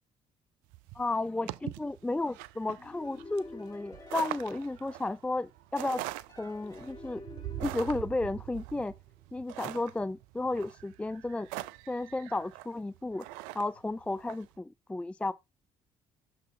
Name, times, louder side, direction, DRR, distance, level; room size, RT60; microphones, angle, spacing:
sound 1, 0.7-14.5, right 17 dB, 75° right, 0.4 m, -42 dB
voice 1, 0.9-6.0 6.4-7.2 7.6-8.9 9.3-11.5 11.9-13.2 13.5-15.3, left 2 dB, 10° left, 0.4 m, -33 dB
sound 2, 2.8-5.6 6.3-9.1, left 2 dB, 25° left, 2.7 m, -50 dB
6.7 x 4.1 x 4.4 m
hypercardioid pair, 55°, 15 cm